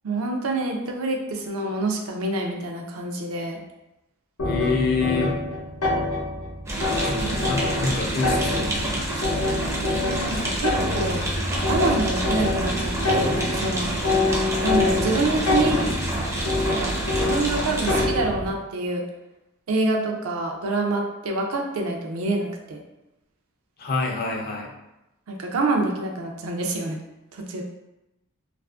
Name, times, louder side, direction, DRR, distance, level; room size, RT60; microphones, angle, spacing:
voice 1, 0.0-3.6 7.2-7.5 10.2-11.2 11.7-13.9 14.6-15.8 16.7-19.0 19.7-22.8 25.3-27.0 27.3-27.6, right 2 dB, 75° right, 2 dB, 0.4 m, -26 dB
sound 1, 4.4-18.5, left 2 dB, 90° left, 0.6 m, -26 dB
voice 2, 4.4-5.4 7.0-9.1 23.8-24.7, left 4 dB, 45° left, 0 dB, 0.4 m, -27 dB
sound 2, 6.7-18.1, right 1 dB, 15° right, 0.4 m, -28 dB
2.4 x 2.4 x 2.3 m, 0.94 s
head